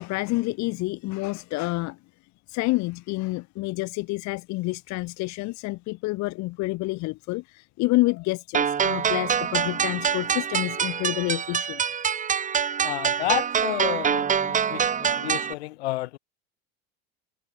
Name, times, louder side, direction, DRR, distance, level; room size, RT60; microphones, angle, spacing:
voice 1, 0.0-2.0 2.5-11.8, left 21 dB, 60° left, 2.0 m, -28 dB
sound 1, 8.5-15.5, right 7 dB, 25° right, 1.1 m, -25 dB
voice 2, 12.8-16.2, left 18 dB, 80° left, 3.8 m, -31 dB
hypercardioid pair, 95°, 32 cm